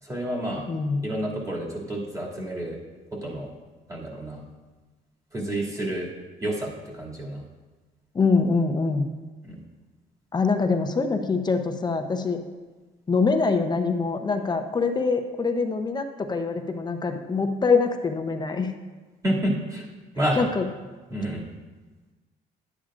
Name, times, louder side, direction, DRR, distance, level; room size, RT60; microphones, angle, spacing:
voice 1, 0.0-0.7 1.0-2.8 3.2-3.5 3.9-4.4 5.3-6.1 6.4-7.4 9.4-9.5 19.2-19.9 20.2-20.5 21.1-21.4, right 1 dB, 20° right, -4 dB, 2.5 m, -29 dB
voice 2, 0.7-1.0 8.1-9.1 10.3-12.4 13.1-18.7 20.4-20.6, left 4 dB, 25° left, 6 dB, 0.7 m, -24 dB
12.0 x 8.6 x 2.5 m, 1.3 s
cardioid pair, 110°, 17 cm